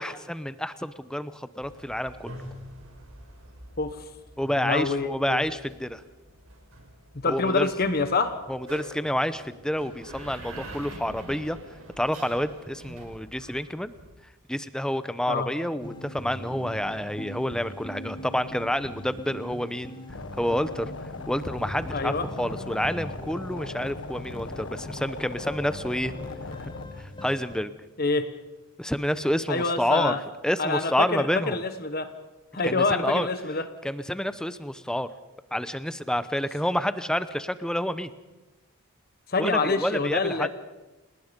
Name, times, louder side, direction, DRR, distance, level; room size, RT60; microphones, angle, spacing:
voice 1, 0.0-2.4 4.4-6.0 7.3-7.7 8.5-11.6 12.0-13.9 14.5-19.9 20.4-20.9 21.3-26.1 26.6-26.7 27.0-27.7 28.8-30.2 30.4-31.6 32.6-33.3 33.8-35.1 35.5-38.1 39.4-40.5, equal, 5° left, 13 dB, 0.8 m, -28 dB
sound 1, 1.6-14.1, right 1 dB, 80° right, 5.9 m, -46 dB
voice 2, 4.6-5.4 7.2-8.3 15.3-15.5 21.9-22.3 28.0-28.3 29.5-30.2 30.6-32.1 32.5-33.6 39.3-40.5, left 3 dB, 45° left, 9 dB, 1.2 m, -26 dB
sound 2, 15.8-27.6, left 1 dB, 20° left, 1.6 m, -41 dB
sound 3, 20.1-26.9, left 2 dB, 65° left, 1.4 m, -39 dB
29.5 x 19.5 x 5.3 m, 1.1 s
head